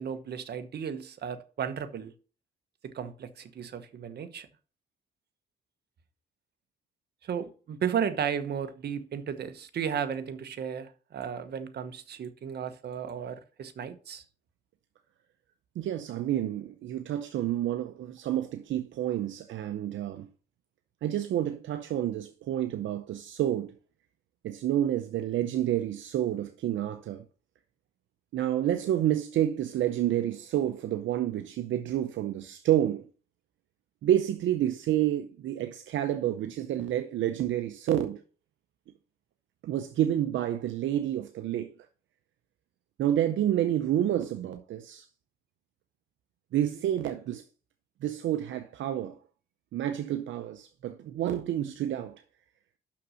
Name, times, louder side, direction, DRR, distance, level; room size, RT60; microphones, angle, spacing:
voice 1, 0.0-2.1 2.8-4.5 7.2-14.2, right 8 dB, 55° right, 1.1 m, -34 dB
voice 2, 15.8-20.3 21.0-23.7 24.4-27.2 28.3-33.1 34.0-38.2 39.6-41.7 43.0-45.1 46.5-47.4 48.0-49.2 49.7-52.2, right 11 dB, 75° right, 0.7 m, -29 dB
6.2 x 5.9 x 6.3 m
cardioid pair, 90°, 20 cm